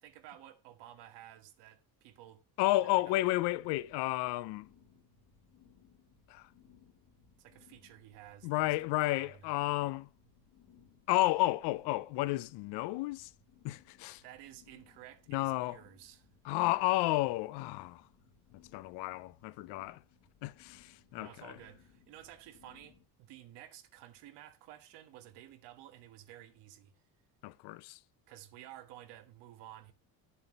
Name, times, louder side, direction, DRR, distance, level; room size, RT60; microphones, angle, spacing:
voice 1, 0.0-2.4 3.1-3.2 7.4-8.7 9.1-9.5 14.2-16.3 21.1-26.9 28.3-29.9, right 12 dB, 90° right, 1.4 m, -53 dB
voice 2, 2.6-4.7 6.3-6.5 8.4-10.1 11.1-13.3 13.6-14.2 15.3-15.8 16.4-18.1 18.7-20.0 20.4-21.6 27.4-28.0, left 17 dB, 80° left, 0.6 m, -32 dB
sound 1, 3.0-23.0, left 7 dB, 60° left, 1.8 m, -64 dB
11.0 x 7.1 x 4.2 m
cardioid pair, 165°, 41 cm